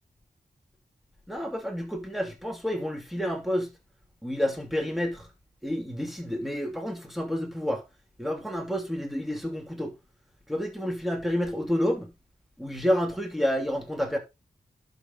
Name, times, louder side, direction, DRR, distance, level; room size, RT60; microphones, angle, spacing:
voice 1, 1.3-3.7 4.2-5.3 5.6-7.8 8.2-9.9 10.5-12.1 12.6-14.2, equal, ahead, 2.7 m, -29 dB
11.0 x 6.0 x 4.0 m
wide cardioid pair, 80°, 15 cm